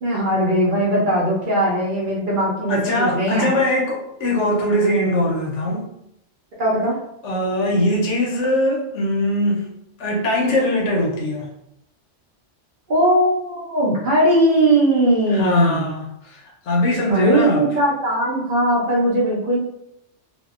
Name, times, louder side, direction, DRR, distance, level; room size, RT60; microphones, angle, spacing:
voice 1, 0.0-3.5 6.6-7.0 12.9-15.9 17.1-19.6, right 1 dB, 55° right, -4 dB, 0.6 m, -19 dB
voice 2, 2.7-5.9 7.2-9.6 10.0-11.5 15.3-17.6, left 1 dB, 80° left, -1 dB, 1.0 m, -21 dB
2.7 x 2.0 x 2.3 m, 0.79 s
omnidirectional pair, 1.2 m